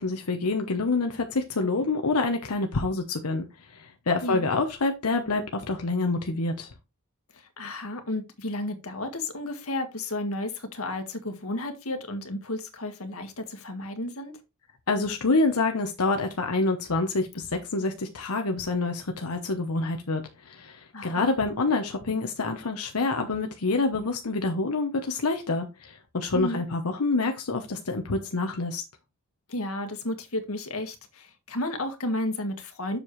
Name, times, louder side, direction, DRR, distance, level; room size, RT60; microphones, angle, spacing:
voice 1, 0.0-6.7 14.9-28.8, left 3 dB, 85° left, 1.0 m, -27 dB
voice 2, 7.3-14.4 20.9-21.3 26.3-26.6 29.5-33.0, left 1 dB, 70° left, 1.8 m, -32 dB
7.4 x 6.9 x 3.1 m
head